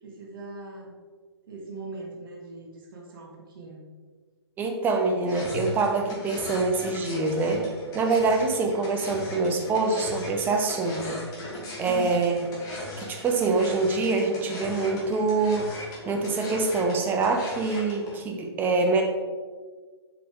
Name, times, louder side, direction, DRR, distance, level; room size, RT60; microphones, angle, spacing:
voice 1, 0.0-0.9 1.5-3.8 11.9-12.2, right 3 dB, 50° right, -2 dB, 1.5 m, -40 dB
voice 2, 4.6-7.7 7.9-11.2 11.8-12.4 13.0-15.7 16.1-19.0, right 3 dB, 15° right, 3 dB, 0.7 m, -25 dB
sound 1, 5.3-18.2, left 1 dB, 25° left, 1.8 m, -39 dB
6.8 x 5.2 x 3.6 m, 1.5 s
figure-of-eight pair, 130°, 14 cm